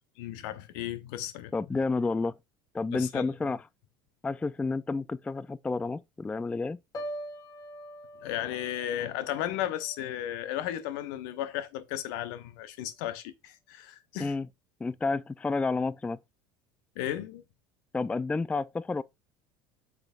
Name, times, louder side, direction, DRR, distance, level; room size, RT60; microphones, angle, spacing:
voice 1, 0.2-1.5 2.9-3.2 8.2-14.3 17.0-17.4, left 12 dB, 65° left, 1.0 m, -34 dB
voice 2, 1.5-2.4 2.7-3.6 4.2-6.8 14.2-14.5 14.8-16.2 17.9-19.0, left 3 dB, 10° left, 0.3 m, -30 dB
Piano, 6.9-10.9 11.3-11.7, right 1 dB, 35° left, 1.7 m, -44 dB
8.3 x 6.1 x 2.5 m
hypercardioid pair, 70°, 12 cm